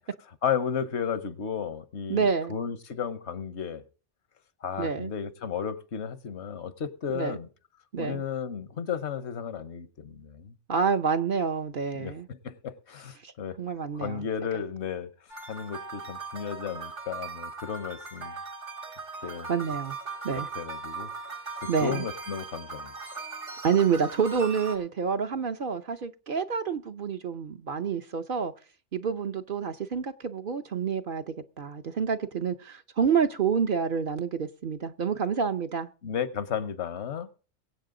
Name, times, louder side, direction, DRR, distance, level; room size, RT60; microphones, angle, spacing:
voice 1, 0.4-3.8 4.6-7.5 8.0-10.5 12.0-13.6 13.9-15.1 15.5-18.3 19.2-19.5 20.5-21.1 21.8-22.9 36.0-37.3, left 7 dB, 70° left, 1.2 m, -33 dB
voice 2, 2.1-2.5 4.8-5.1 7.1-7.4 7.9-8.2 10.7-12.3 13.2-13.3 13.6-14.2 19.5-20.0 20.2-20.5 21.6-22.0 23.6-28.5 28.9-35.9, right 6 dB, 55° right, 0.8 m, -28 dB
sound 1, 15.3-24.8, right 4 dB, 80° right, 2.3 m, -39 dB
22.5 x 8.2 x 3.8 m
omnidirectional pair, 1.2 m